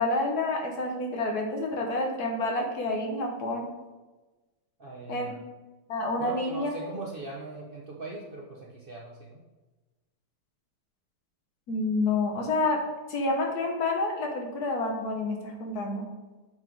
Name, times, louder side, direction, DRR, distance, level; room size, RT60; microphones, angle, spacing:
voice 1, 0.0-3.7 5.1-5.4 5.9-6.7 11.7-12.8 13.1-16.0, left 2 dB, 60° left, 2 dB, 1.4 m, -28 dB
voice 2, 4.8-5.4 6.2-9.4, right 2 dB, 80° right, -2 dB, 0.5 m, -40 dB
7.4 x 3.9 x 4.5 m, 1.2 s
omnidirectional pair, 2.0 m